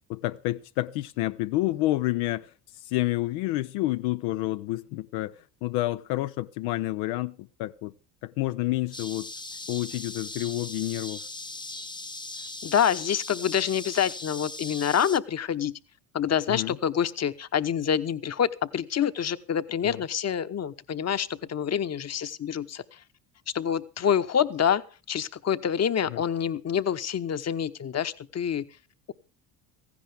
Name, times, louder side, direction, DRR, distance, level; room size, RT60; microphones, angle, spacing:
voice 1, 0.1-2.5 2.8-7.9 8.2-9.3 9.7-11.2 16.5-16.8 19.8-20.0 26.1-26.2, left 17 dB, 75° left, 0.7 m, -29 dB
sound 1, 8.9-15.2, left 2 dB, 10° left, 0.9 m, -39 dB
voice 2, 12.6-15.7 16.1-23.0 23.5-24.8 25.1-28.7, left 8 dB, 35° left, 1.0 m, -27 dB
16.5 x 15.0 x 3.5 m
hypercardioid pair, 70°, 47 cm